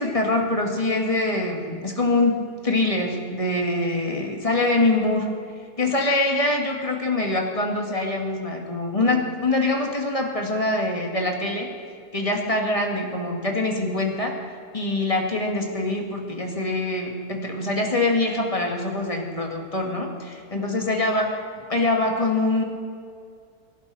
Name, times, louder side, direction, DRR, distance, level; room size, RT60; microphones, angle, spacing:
voice 1, 0.0-5.3 5.8-11.7 12.1-14.4 14.7-21.2 21.7-22.6, left 2 dB, 20° left, 1 dB, 1.9 m, -24 dB
24.5 x 11.0 x 4.1 m, 2.3 s
omnidirectional pair, 1.7 m